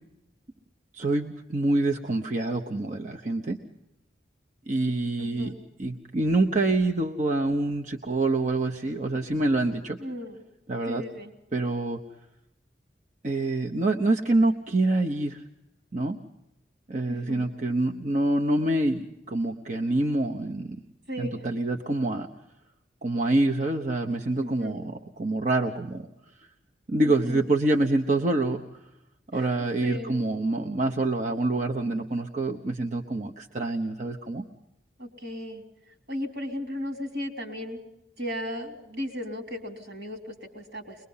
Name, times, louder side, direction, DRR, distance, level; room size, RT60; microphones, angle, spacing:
voice 1, 0.9-3.6 4.7-10.0 10.7-11.0 11.5-12.0 13.2-15.4 15.9-16.2 16.9-20.8 21.2-22.3 23.0-26.1 26.9-28.6 29.3-34.4, right 2 dB, 45° right, 2 dB, 0.9 m, -26 dB
voice 2, 5.2-5.5 10.0-10.4 10.9-11.3 17.1-17.4 21.1-21.4 24.4-24.8 27.2-27.4 29.3-29.4 29.8-30.2 35.0-35.6 36.1-37.8 38.2-41.0, left 1 dB, 75° right, 3 dB, 3.5 m, -35 dB
23.0 x 21.0 x 5.6 m, 0.88 s
head